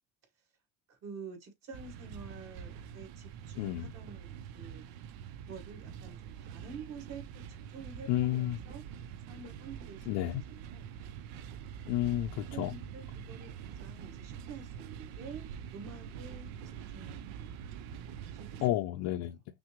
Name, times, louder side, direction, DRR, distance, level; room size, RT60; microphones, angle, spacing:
voice 1, 0.9-4.8 5.5-8.8 9.3-10.9 12.5-17.6 18.3-18.6 19.2-19.3, right 4 dB, 50° right, 2.4 m, -49 dB
sound 1, 1.7-18.7, right 8 dB, 85° right, 0.6 m, -45 dB
voice 2, 3.6-3.9 8.1-8.6 10.1-10.4 11.9-12.7 18.6-19.4, left 14 dB, 70° left, 0.6 m, -31 dB
6.0 x 2.0 x 3.0 m
cardioid pair, 145°, 33 cm